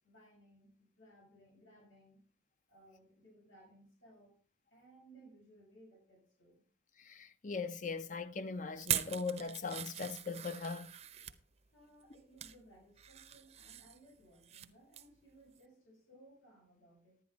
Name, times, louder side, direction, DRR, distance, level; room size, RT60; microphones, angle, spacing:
voice 1, 0.0-2.2 2.7-4.3 4.7-6.6 11.7-17.2, right 1 dB, 80° left, 6.6 m, -62 dB
voice 2, 7.0-10.9, left 4 dB, 40° left, 0.7 m, -40 dB
sound 1, 8.8-11.4 12.0-12.6 13.0-14.7 14.9-15.2 15.6-15.7, right 10 dB, 35° right, 0.7 m, -41 dB
10.5 x 10.0 x 4.1 m
head